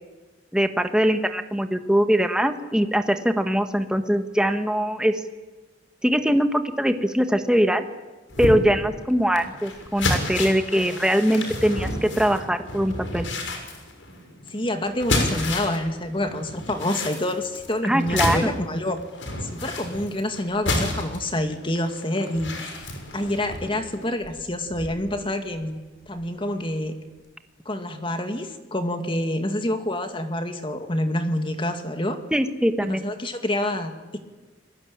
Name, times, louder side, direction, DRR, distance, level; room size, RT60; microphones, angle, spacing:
voice 1, 0.5-5.2 6.0-7.9 8.4-13.3 17.8-18.5 32.3-33.0, equal, 5° right, 7 dB, 1.6 m, -22 dB
sound 1, 8.3-15.9 16.2-25.2 25.6-25.7 26.1-26.2, left 2 dB, 80° left, 6.6 m, -30 dB
voice 2, 14.5-19.0 19.4-22.8 23.1-25.8 26.1-26.9 27.7-32.2 32.8-34.2, left 1 dB, 25° left, 6 dB, 2.4 m, -27 dB
30.0 x 22.5 x 8.9 m, 1.2 s
head